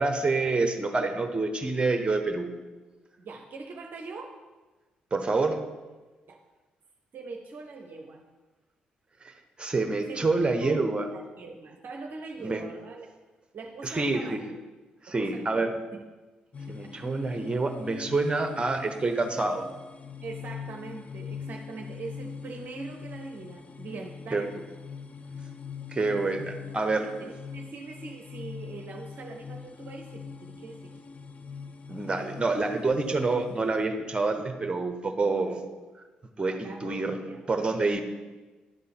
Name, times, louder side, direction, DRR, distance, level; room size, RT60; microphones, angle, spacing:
voice 1, 0.0-2.5 5.1-5.6 9.2-9.3 9.6-11.1 12.4-12.6 13.8-14.4 15.0-15.8 16.7-19.6 24.3-24.4 25.9-27.1 31.9-35.6 36.4-37.2 37.5-38.0, right 3 dB, 25° right, 5 dB, 1.0 m, -27 dB
voice 2, 3.2-4.3 6.3-6.4 7.1-8.2 10.1-10.3 10.6-10.8 11.1-13.1 13.5-14.5 15.1-16.0 16.7-17.1 20.2-24.7 27.2-30.9 36.4-37.4, right 3 dB, 50° right, 2 dB, 0.7 m, -42 dB
sound 1, 16.5-33.9, left 6 dB, 30° left, 0.5 m, -43 dB
10.5 x 3.7 x 5.8 m, 1.2 s
figure-of-eight pair, 40°, 4 cm